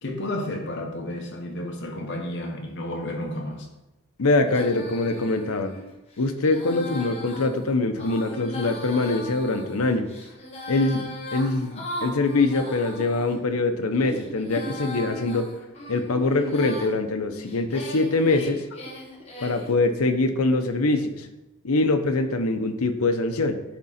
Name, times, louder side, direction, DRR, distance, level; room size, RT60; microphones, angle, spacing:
voice 1, 0.0-3.7, left 1 dB, 55° left, 1 dB, 1.3 m, -31 dB
voice 2, 4.2-5.7 6.2-10.1 10.7-11.0 11.3-15.5 15.9-18.7 19.4-21.3 21.6-23.6, left 2 dB, 85° left, 8 dB, 0.8 m, -23 dB
Female singing, 4.5-13.4 13.9-16.9 17.4-19.7, left 1 dB, 30° left, 1.4 m, -38 dB
sound 1, 13.0-17.6 17.9-19.8, right 2 dB, 25° right, 0.9 m, -41 dB
10.5 x 3.7 x 4.2 m, 0.94 s
head